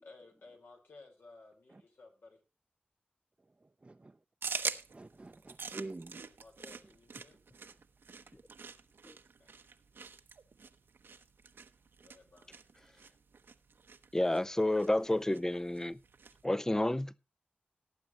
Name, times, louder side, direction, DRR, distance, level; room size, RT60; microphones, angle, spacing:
voice 1, 0.0-2.4 6.4-7.4 9.4-9.5 12.0-12.5, left 3 dB, 80° left, 4.4 m, -57 dB
voice 2, 3.6-4.2 4.9-6.3, right 2 dB, 30° right, 0.6 m, -47 dB
sound 1, 4.4-16.4, right 5 dB, 85° right, 0.9 m, -45 dB
voice 3, 14.1-16.0 16.4-17.2, left 1 dB, 15° left, 0.5 m, -30 dB
18.0 x 8.7 x 3.0 m
wide cardioid pair, 60°, 4 cm